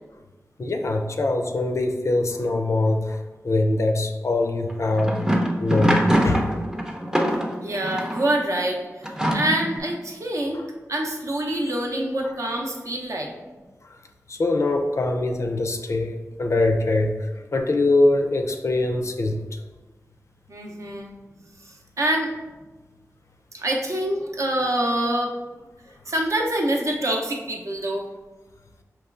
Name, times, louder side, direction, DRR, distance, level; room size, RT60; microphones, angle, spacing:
voice 1, 0.6-5.2 5.6-6.5 10.5-10.6 14.3-19.4, left 2 dB, 55° left, 4 dB, 0.4 m, -23 dB
sound 1, 4.7-8.3 9.0-9.8, equal, 10° right, 0.5 m, -23 dB
voice 2, 7.6-10.6 10.9-13.3 20.5-21.1 21.6-22.3 23.5-25.3 26.1-28.1, right 1 dB, 60° right, 0 dB, 0.6 m, -26 dB
5.3 x 3.0 x 2.4 m, 1.2 s
wide cardioid pair, 95°, 6 cm